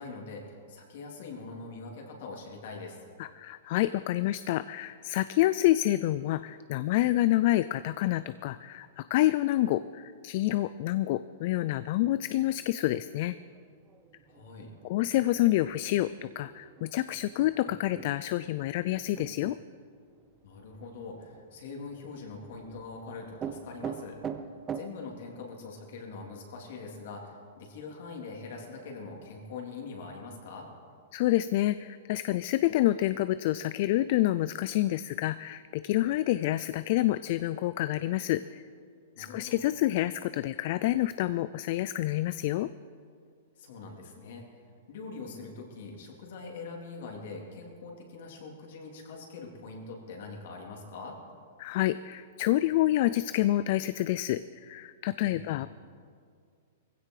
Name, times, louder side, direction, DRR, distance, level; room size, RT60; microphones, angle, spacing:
voice 1, 0.0-3.0 14.3-14.7 20.4-24.2 24.7-30.7 39.2-39.6 43.6-44.6 44.9-51.2 55.2-55.6, left 4 dB, 60° left, 0 dB, 3.5 m, -43 dB
voice 2, 3.2-13.4 14.8-19.6 31.1-38.6 39.2-42.7 51.6-55.7, left 15 dB, 45° left, 14 dB, 0.3 m, -28 dB
sound 1, 12.4-24.8, right 7 dB, 20° right, 0.8 m, -45 dB
18.5 x 16.0 x 4.9 m, 2.2 s
hypercardioid pair, 155°, 0 cm